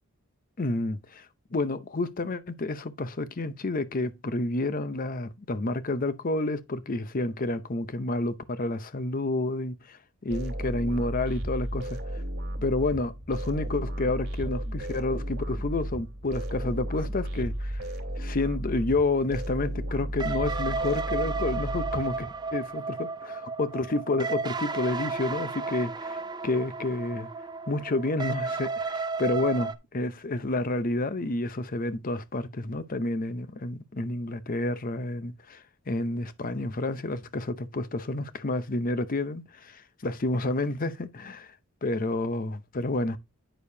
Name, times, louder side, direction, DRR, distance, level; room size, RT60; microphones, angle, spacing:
voice 1, 0.6-1.3 1.5-12.0 12.6-17.8 18.2-23.1 23.6-27.3 27.7-41.5 41.8-43.2, left 2 dB, 40° left, 0.7 m, -30 dB
sound 1, 10.3-22.5, equal, 55° right, 2.0 m, -34 dB
sound 2, 20.2-29.8, right 4 dB, 20° right, 0.5 m, -33 dB
9.0 x 6.6 x 2.7 m
head